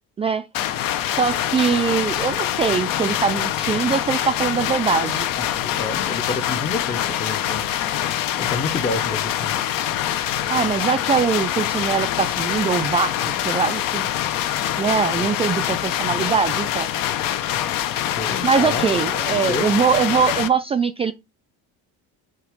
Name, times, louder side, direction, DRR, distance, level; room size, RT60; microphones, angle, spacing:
sound 1, 0.5-20.5, left 11 dB, 65° left, 0.9 m, -24 dB
voice 1, 1.2-5.3 10.5-14.1 14.8-16.9 18.4-21.1, right 6 dB, 20° right, 0.3 m, -22 dB
voice 2, 5.4-7.6 8.4-9.6 18.2-18.9 19.4-19.7, left 3 dB, 25° left, 0.7 m, -29 dB
8.0 x 2.9 x 5.0 m
cardioid pair, 150°, 35 cm